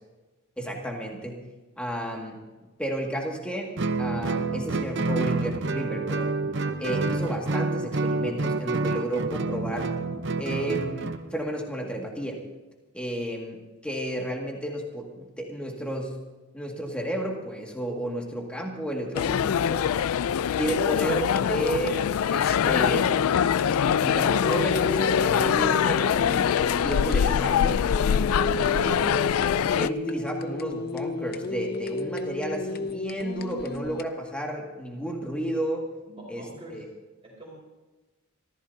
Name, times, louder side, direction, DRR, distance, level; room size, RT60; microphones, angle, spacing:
voice 1, 0.6-1.4 1.8-2.4 2.8-3.7 4.0-6.4 6.8-10.0 10.4-12.4 12.9-16.2 16.5-19.9 20.6-23.4 24.0-26.5 26.8-27.8 28.7-29.1 29.8-35.9 36.3-36.5 36.7-36.9, right 1 dB, 5° left, 0 dB, 2.0 m, -32 dB
Guitar, 3.8-11.2, right 3 dB, 55° right, 0.7 m, -28 dB
sound 1, 19.1-29.9, left 8 dB, 80° left, 0.3 m, -24 dB
sound 2, 19.1-34.0, left 2 dB, 45° left, 0.7 m, -33 dB
voice 2, 36.1-36.8 37.2-37.5, right 1 dB, 25° right, -3 dB, 4.3 m, -44 dB
24.5 x 15.0 x 2.8 m, 1.2 s
head